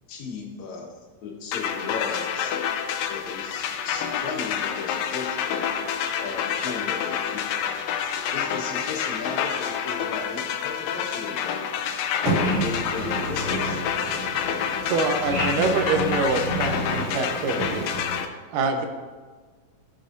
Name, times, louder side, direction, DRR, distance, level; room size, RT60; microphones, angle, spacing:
voice 1, 0.1-2.6 3.1-5.7 6.2-11.7 12.5-13.9, left 4 dB, 65° left, -1 dB, 2.6 m, -36 dB
sound 1, 1.5-18.3, left 8 dB, 90° left, 2.3 m, -28 dB
voice 2, 12.2-18.2, right 1 dB, 55° right, -8 dB, 4.0 m, -30 dB
voice 3, 14.8-17.8 18.5-18.8, right 4 dB, 80° right, 5 dB, 2.3 m, -25 dB
14.5 x 6.5 x 2.7 m, 1.4 s
omnidirectional pair, 3.8 m